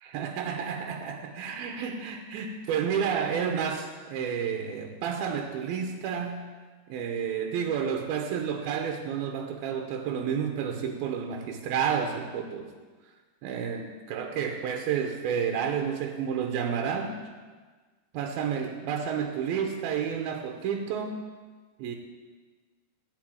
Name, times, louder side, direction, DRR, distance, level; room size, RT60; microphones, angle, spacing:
voice 1, 0.0-6.5 6.9-12.7 13.4-17.2 18.1-21.2 21.8-22.0, right 7 dB, 75° right, 3 dB, 2.5 m, -30 dB
15.5 x 5.4 x 9.1 m, 1.4 s
omnidirectional pair, 4.9 m